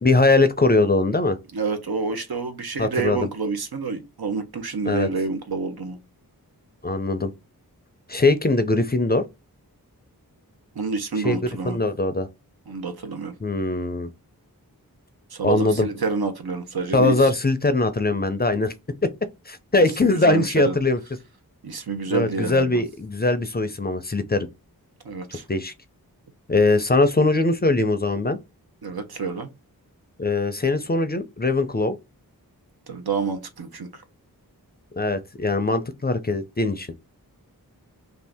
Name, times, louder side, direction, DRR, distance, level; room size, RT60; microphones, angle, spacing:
voice 1, 0.0-1.4 2.8-3.3 4.8-5.1 6.8-7.3 8.1-9.2 11.2-11.4 11.7-12.3 13.4-14.1 15.4-15.9 16.9-18.7 19.0-19.1 19.5-21.0 22.1-24.5 25.3-25.7 26.5-28.4 30.2-32.0 34.9-36.9, left 2 dB, 25° left, 0.4 m, -21 dB
voice 2, 1.5-6.0 10.8-11.8 12.7-13.3 15.3-17.3 20.0-20.8 21.6-22.8 25.0-25.4 28.8-29.5 32.9-34.0, right 4 dB, 75° right, 0.8 m, -28 dB
2.7 x 2.4 x 3.4 m
wide cardioid pair, 50°, 37 cm